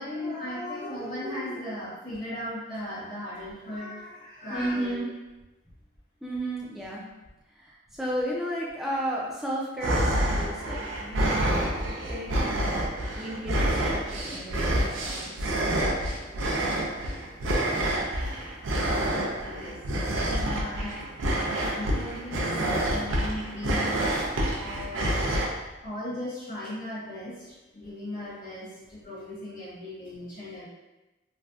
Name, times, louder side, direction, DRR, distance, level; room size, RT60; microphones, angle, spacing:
voice 1, 0.0-5.1 19.4-24.1 24.5-25.5 25.8-30.7, left 1 dB, 45° left, -9 dB, 1.4 m, -37 dB
voice 2, 4.5-5.1 6.2-7.0 7.5-15.5 20.3-20.8, right 1 dB, ahead, -5 dB, 0.5 m, -34 dB
sound 1, 9.8-25.5, right 1 dB, 85° right, 0.5 m, -28 dB
3.3 x 2.2 x 2.6 m, 1.1 s
head